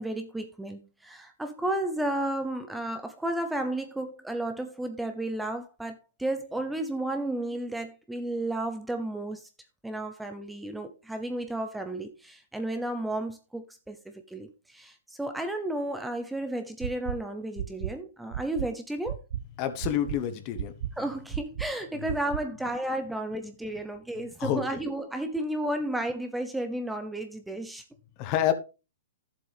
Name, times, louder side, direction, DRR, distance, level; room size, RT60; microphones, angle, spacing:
voice 1, 0.0-9.5 9.8-19.2 21.0-27.8, right 1 dB, 5° right, 0.8 m, -33 dB
sound 1, 16.8-17.1 17.6-17.9 18.3-18.7 19.1-19.4 19.8-20.2 20.6-20.9 21.3-21.7 22.1-22.4, right 11 dB, 60° right, 0.6 m, -32 dB
voice 2, 19.6-20.7 21.9-22.0 24.4-24.6 28.2-28.5, left 11 dB, 35° left, 1.3 m, -28 dB
11.0 x 7.5 x 3.5 m
hypercardioid pair, 140°, 0 cm